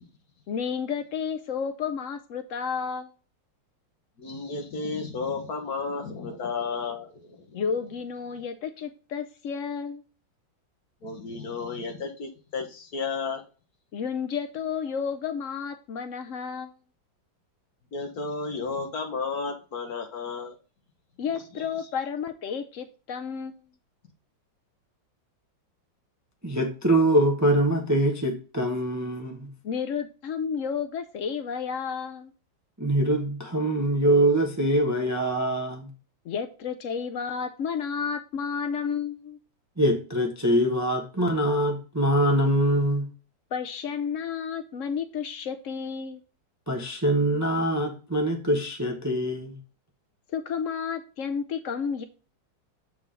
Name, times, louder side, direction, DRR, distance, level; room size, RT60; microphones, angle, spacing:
voice 1, 0.5-3.1 7.5-10.0 13.9-16.7 21.2-23.7 29.6-32.3 36.2-39.4 43.5-46.2 50.3-52.0, left 6 dB, 80° left, 0.7 m, -31 dB
voice 2, 4.2-7.4 11.0-13.4 17.9-20.5 21.5-21.6, left 4 dB, 55° left, 1.7 m, -33 dB
voice 3, 26.4-29.5 32.8-35.9 39.8-43.1 46.7-49.6, right 1 dB, 15° right, 0.7 m, -24 dB
7.6 x 4.8 x 3.7 m
omnidirectional pair, 2.1 m